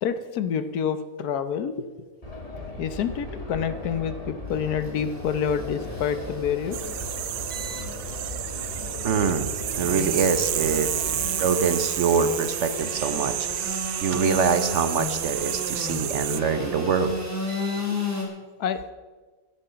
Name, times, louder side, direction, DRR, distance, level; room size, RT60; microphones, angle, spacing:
voice 1, 0.0-1.9 2.8-6.8 18.6-18.9, left 8 dB, 75° left, 12 dB, 1.3 m, -27 dB
sound 1, 2.2-11.3, left 1 dB, 20° left, 2.4 m, -38 dB
Engine / Sawing, 4.5-18.2, left 2 dB, 10° right, 2.8 m, -34 dB
sound 2, 6.7-16.4, right 12 dB, 75° right, 1.2 m, -30 dB
voice 2, 7.5-7.9 9.0-10.9 11.3-17.1 17.5-17.8, right 5 dB, 55° right, 10 dB, 1.0 m, -25 dB
14.0 x 10.0 x 5.7 m, 1.3 s
omnidirectional pair, 1.7 m